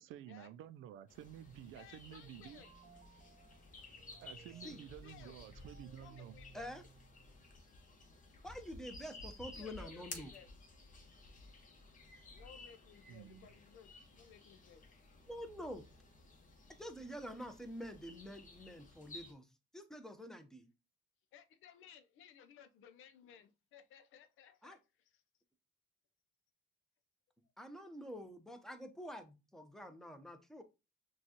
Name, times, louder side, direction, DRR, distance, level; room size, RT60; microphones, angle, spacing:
voice 1, 0.0-2.6 4.2-6.3 13.1-13.5, right 11 dB, 85° right, 0.4 m, -52 dB
sound 1, 1.1-19.3, left 3 dB, 40° left, 1.1 m, -55 dB
voice 2, 1.7-2.7 5.0-5.4 6.0-6.7 9.5-10.5 12.3-14.9 21.3-25.2, left 8 dB, 85° left, 0.6 m, -59 dB
sound 2, 2.2-7.7, right 6 dB, 50° right, 0.7 m, -61 dB
voice 3, 8.4-10.3 15.3-15.8 16.8-19.5 19.7-20.7 24.6-24.8 27.6-30.6, equal, ahead, 0.7 m, -47 dB
6.0 x 2.3 x 2.8 m
cardioid pair, 90°, 20 cm